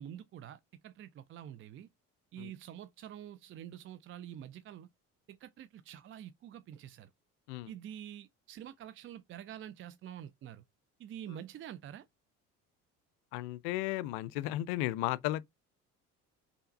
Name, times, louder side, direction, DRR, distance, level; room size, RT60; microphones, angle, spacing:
voice 1, 0.0-1.9 2.3-4.9 5.3-7.1 7.7-10.6 11.0-12.1, right 10 dB, 30° right, 0.5 m, -47 dB
voice 2, 13.3-15.4, left 16 dB, 55° left, 0.6 m, -34 dB
5.6 x 4.1 x 5.1 m
figure-of-eight pair, 55°, 44 cm